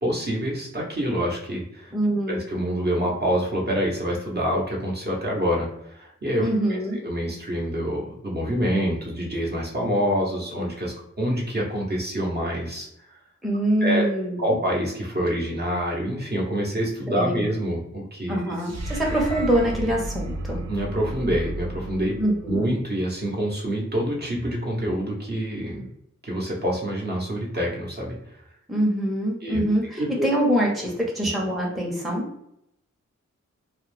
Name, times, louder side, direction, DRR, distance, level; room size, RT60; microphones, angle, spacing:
voice 1, 0.0-1.9 2.3-6.8 7.0-13.2 13.8-14.1 14.4-18.4 20.7-22.2 22.5-25.9 26.2-28.2 29.4-30.3, equal, 35° right, -3 dB, 0.8 m, -26 dB
voice 2, 1.9-2.4 6.4-7.0 13.4-14.6 17.2-17.4 18.3-20.6 22.2-22.7 28.7-32.2, right 1 dB, ahead, -2 dB, 0.7 m, -24 dB
sound 1, 18.6-22.9, right 1 dB, 65° right, 0.5 m, -33 dB
2.3 x 2.1 x 3.2 m, 0.77 s
cardioid pair, 50°, 29 cm